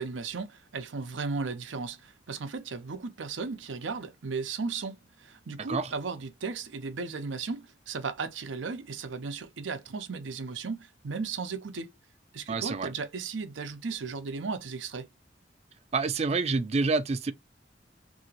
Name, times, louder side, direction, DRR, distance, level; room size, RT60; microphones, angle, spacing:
voice 1, 0.0-11.9 12.3-15.1, right 4 dB, 90° right, 0.6 m, -35 dB
voice 2, 12.5-12.9 15.9-17.3, right 4 dB, 35° right, 0.4 m, -27 dB
2.9 x 2.7 x 2.7 m
head